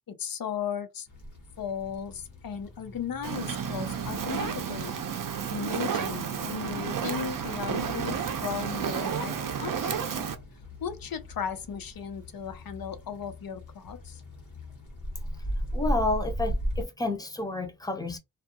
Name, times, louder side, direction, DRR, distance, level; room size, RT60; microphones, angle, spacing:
voice 1, 0.1-1.1 1.6-5.0 5.5-10.3 10.8-14.2, left 7 dB, 75° left, 0.6 m, -36 dB
sound 1, 1.1-16.8, equal, 60° left, 1.1 m, -38 dB
Fire, 3.2-10.3, right 7 dB, 65° right, 0.5 m, -31 dB
voice 2, 15.7-18.2, left 2 dB, 10° left, 0.6 m, -30 dB
2.4 x 2.2 x 2.7 m
wide cardioid pair, 90°, 35 cm